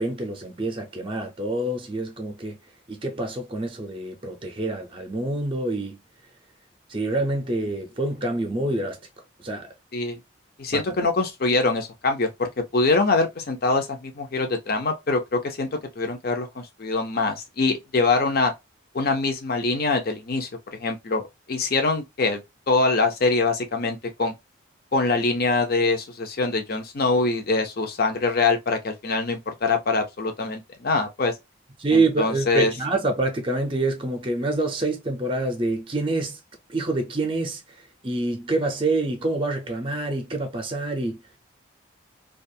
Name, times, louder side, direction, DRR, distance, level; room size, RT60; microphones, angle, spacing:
voice 1, 0.0-2.6 2.9-6.0 6.9-9.0 9.4-9.7 10.7-10.8 31.8-36.4 36.7-37.6 38.0-41.2, right 2 dB, 25° right, 0.5 m, -26 dB
voice 2, 10.6-15.7 16.0-18.5 18.9-20.5 20.8-21.2 21.5-22.4 22.7-24.3 24.9-31.3 31.9-32.7, left 3 dB, 45° left, 0.6 m, -24 dB
2.4 x 2.3 x 2.6 m
head